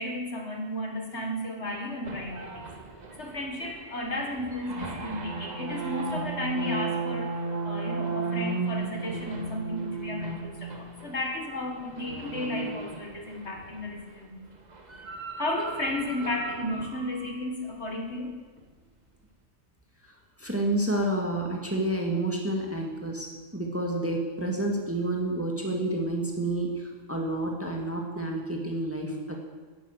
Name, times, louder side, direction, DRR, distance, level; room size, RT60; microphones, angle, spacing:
voice 1, 0.0-2.7 3.2-14.5 15.4-18.3, left 1 dB, 50° left, 2 dB, 1.9 m, -33 dB
sound 1, 2.0-13.9 14.7-17.3, right 4 dB, 30° right, 1.2 m, -35 dB
voice 2, 20.4-29.3, right 1 dB, 10° right, 0 dB, 1.7 m, -29 dB
10.5 x 10.5 x 8.1 m, 1.4 s
omnidirectional pair, 1.5 m